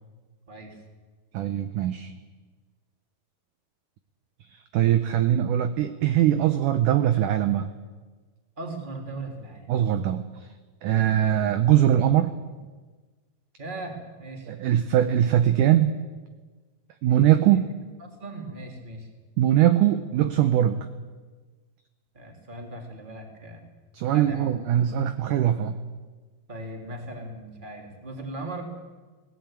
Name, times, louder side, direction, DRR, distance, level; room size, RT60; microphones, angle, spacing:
voice 1, 1.3-2.1 4.7-7.7 9.7-10.2 10.8-12.3 14.5-16.0 17.0-17.7 19.4-20.9 23.9-25.8, right 11 dB, 75° right, 9 dB, 2.0 m, -21 dB
voice 2, 8.6-9.7 13.6-14.5 17.1-17.5 18.2-19.1 22.1-23.6 24.0-24.5 26.5-28.7, right 2 dB, 15° right, 2 dB, 2.6 m, -38 dB
19.5 x 17.5 x 8.9 m, 1.3 s
omnidirectional pair, 4.4 m